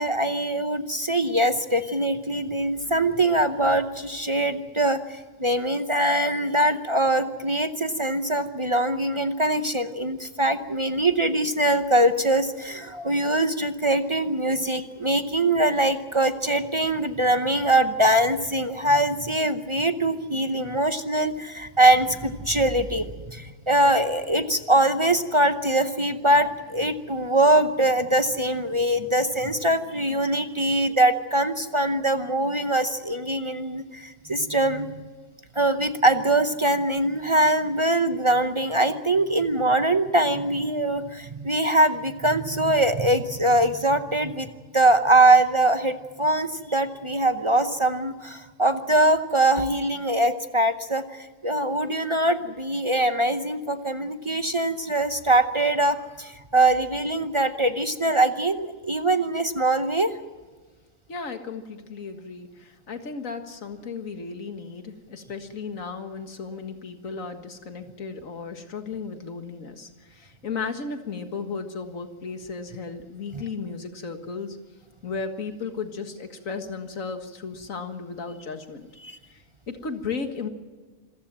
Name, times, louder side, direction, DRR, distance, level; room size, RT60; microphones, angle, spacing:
voice 1, 0.0-35.1 35.5-44.5 44.7-60.1 79.0-79.2, right 1 dB, 25° right, 9 dB, 0.8 m, -22 dB
voice 2, 61.1-74.6 75.0-78.9 79.3-80.5, left 5 dB, 85° left, 7 dB, 2.1 m, -35 dB
26.5 x 15.0 x 7.5 m, 1.4 s
omnidirectional pair, 1.4 m